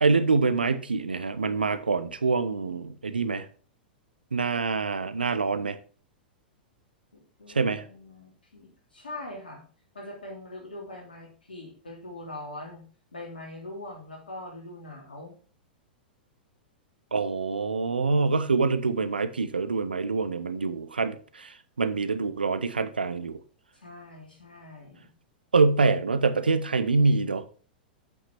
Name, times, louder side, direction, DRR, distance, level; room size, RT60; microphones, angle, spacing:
voice 1, 0.0-3.5 4.3-5.8 7.5-7.8 17.1-23.4 25.5-27.4, right 4 dB, 80° right, 0.8 m, -25 dB
voice 2, 7.1-9.6 9.9-12.8 13.1-15.4 23.7-25.1, left 1 dB, 75° left, 3.0 m, -42 dB
8.0 x 5.9 x 4.4 m
figure-of-eight pair, 100°, 5 cm